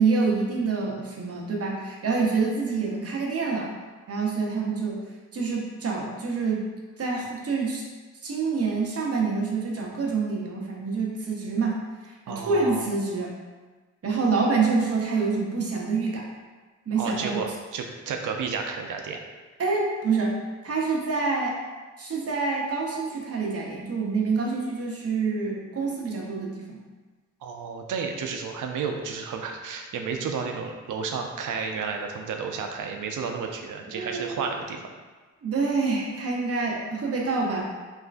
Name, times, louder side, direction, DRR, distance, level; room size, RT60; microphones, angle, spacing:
voice 1, 0.0-3.7 4.1-5.0 5.3-6.6 7.0-7.8 8.2-13.3 14.0-16.3 16.9-17.4 19.6-20.4 20.6-21.6 22.0-26.8 33.9-34.5 35.4-37.6, right 4 dB, 50° right, -2 dB, 0.8 m, -26 dB
voice 2, 12.3-12.9 17.0-19.2 27.4-34.8, right 5 dB, 75° right, 3 dB, 0.5 m, -32 dB
3.5 x 3.1 x 2.5 m, 1.3 s
cardioid pair, 85°, 31 cm